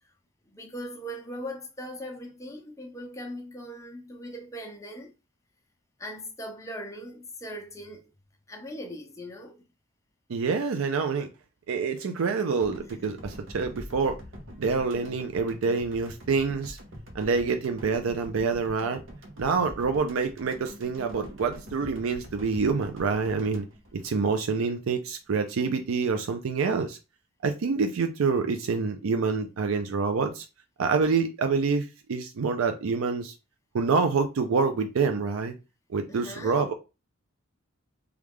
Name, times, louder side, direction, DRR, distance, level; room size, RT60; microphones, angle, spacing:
voice 1, 0.5-5.1 6.0-8.1 8.5-9.6 12.8-13.0 36.1-36.6, equal, 15° left, 0.6 m, -40 dB
voice 2, 10.3-11.3 11.7-14.2 14.6-16.8 17.1-19.0 19.4-23.7 23.9-27.0 27.4-30.4 30.8-33.3 33.7-35.5 35.9-36.7, right 4 dB, 90° right, 0.4 m, -27 dB
sound 1, 12.6-24.8, equal, 70° right, 0.8 m, -45 dB
3.1 x 2.3 x 3.5 m
head